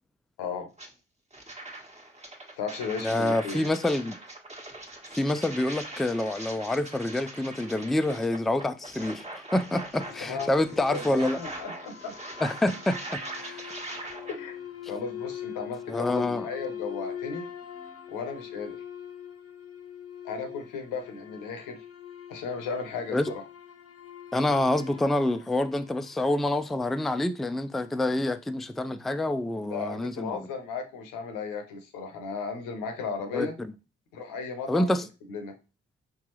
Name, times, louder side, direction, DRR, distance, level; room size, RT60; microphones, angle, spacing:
voice 1, 0.4-0.7 2.6-3.7 10.2-12.1 14.3-14.5 14.9-17.5 18.1-18.8 20.2-21.8 22.3-23.4 29.6-33.6 34.1-34.9 35.3-35.5, left 5 dB, 85° left, 0.9 m, -35 dB
sound 1, 0.8-0.9 1.3-14.4, right 2 dB, 20° right, 1.2 m, -41 dB
voice 2, 3.0-4.2 5.1-9.3 9.5-11.4 12.4-13.7 15.9-16.5 23.1-23.3 24.3-30.5 33.3-33.5 34.7-35.0, left 1 dB, ahead, 0.4 m, -27 dB
sound 2, 9.9-26.5, left 9 dB, 45° left, 0.8 m, -42 dB
4.6 x 3.6 x 3.0 m
hypercardioid pair, 40°, 32 cm